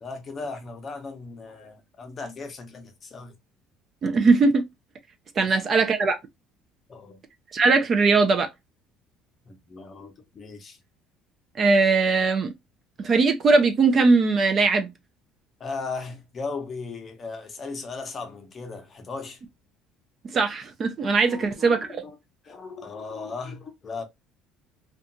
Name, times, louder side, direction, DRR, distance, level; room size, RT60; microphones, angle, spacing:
voice 1, 0.0-3.3 5.4-5.6 6.9-7.2 9.5-10.8 15.6-19.4 21.3-22.2 22.4-24.0, left 4 dB, 30° left, 0.6 m, -37 dB
voice 2, 4.0-4.6 5.4-6.2 7.5-8.5 11.6-12.5 13.0-14.9 20.2-22.0, right 4 dB, 30° right, 0.3 m, -20 dB
2.7 x 2.2 x 2.5 m
cardioid pair, 145°, 0 cm